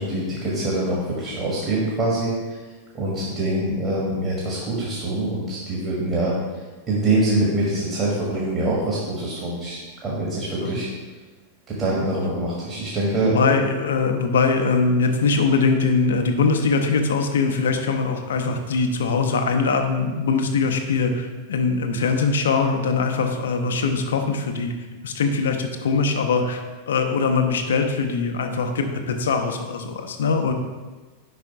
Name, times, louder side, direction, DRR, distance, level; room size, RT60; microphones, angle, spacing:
voice 1, 0.0-2.6 2.9-6.3 6.9-10.9 11.7-13.4, right 2 dB, 30° right, -5 dB, 1.5 m, -24 dB
voice 2, 13.2-24.7 25.0-30.5, left 4 dB, 65° left, 5 dB, 0.7 m, -22 dB
5.2 x 4.9 x 4.7 m, 1.3 s
figure-of-eight pair, 90°, 0 cm